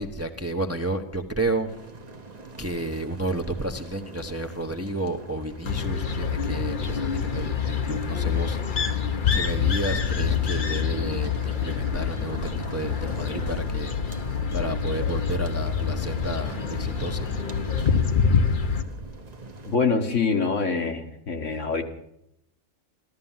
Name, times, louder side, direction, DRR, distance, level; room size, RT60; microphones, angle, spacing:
voice 1, 0.0-1.7 2.6-14.0 14.2-17.4, right 1 dB, 15° right, 6 dB, 0.9 m, -31 dB
sound 1, 1.7-19.8, right 3 dB, 35° right, 1.1 m, -44 dB
sound 2, 5.6-18.8, left 6 dB, 40° left, 1.0 m, -26 dB
voice 2, 19.7-21.8, left 4 dB, 65° left, 5 dB, 1.8 m, -25 dB
14.5 x 13.5 x 7.3 m, 0.77 s
omnidirectional pair, 1.4 m